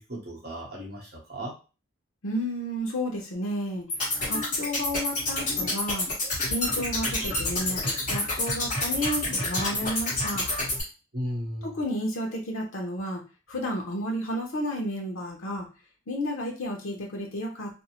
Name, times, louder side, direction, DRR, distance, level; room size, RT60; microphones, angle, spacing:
voice 1, 0.0-1.5 11.1-11.8, equal, 50° right, -2 dB, 0.9 m, -35 dB
voice 2, 2.2-3.9 4.2-6.1 6.4-10.5 11.6-13.2 13.5-15.7 16.1-17.8, equal, 85° left, -1 dB, 0.7 m, -32 dB
sound 1, 3.9-10.8, left 2 dB, 40° left, 1.1 m, -28 dB
2.6 x 2.0 x 2.9 m, 0.33 s
head